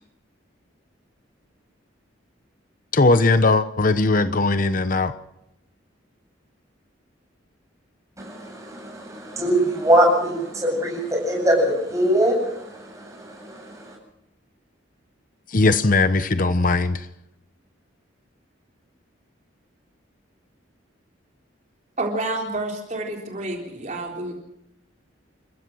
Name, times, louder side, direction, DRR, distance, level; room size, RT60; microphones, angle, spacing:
voice 1, 2.9-5.1 15.5-17.1, left 3 dB, 45° left, 11 dB, 0.9 m, -19 dB
voice 2, 8.2-13.9, equal, 15° right, 0 dB, 8.0 m, -22 dB
voice 3, 22.0-24.3, right 2 dB, 40° right, 0 dB, 3.8 m, -29 dB
29.0 x 16.0 x 6.2 m, 0.84 s
head